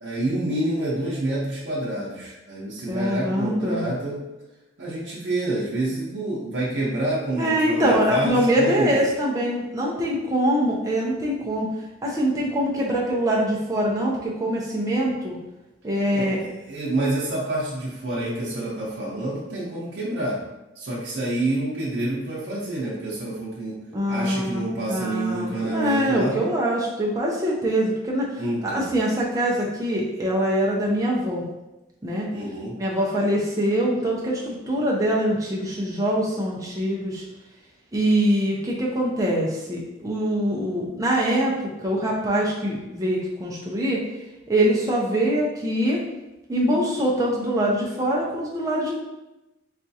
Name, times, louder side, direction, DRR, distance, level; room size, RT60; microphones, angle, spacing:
voice 1, 0.0-4.2 4.8-9.0 16.1-20.4 20.8-23.8 24.1-26.4 28.4-28.9 32.3-32.8, right 1 dB, 65° right, -6 dB, 0.7 m, -28 dB
voice 2, 2.9-3.9 7.4-11.7 12.0-15.4 15.8-16.4 23.9-31.5 32.0-32.3 32.8-37.2 37.9-44.0 44.5-46.0 46.5-48.9, equal, 15° right, -4 dB, 0.4 m, -24 dB
4.1 x 2.3 x 2.7 m, 1.0 s
head